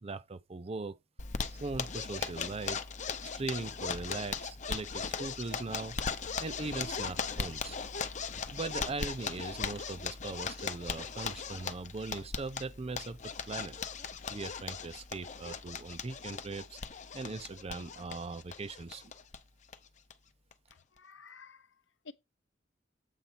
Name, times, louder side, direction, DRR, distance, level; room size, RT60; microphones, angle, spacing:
voice 1, 0.0-1.0 1.5-2.8 3.2-6.0 6.4-7.8 8.5-13.8 14.3-16.8 17.1-19.0, right 3 dB, 35° right, 0.5 m, -40 dB
Zipper (clothing), 1.2-19.4 19.7-19.8 20.1-20.2 20.5-21.0, left 5 dB, 40° left, 0.8 m, -38 dB
voice 2, 20.7-22.1, left 4 dB, 75° left, 0.8 m, -53 dB
8.3 x 3.9 x 5.9 m
head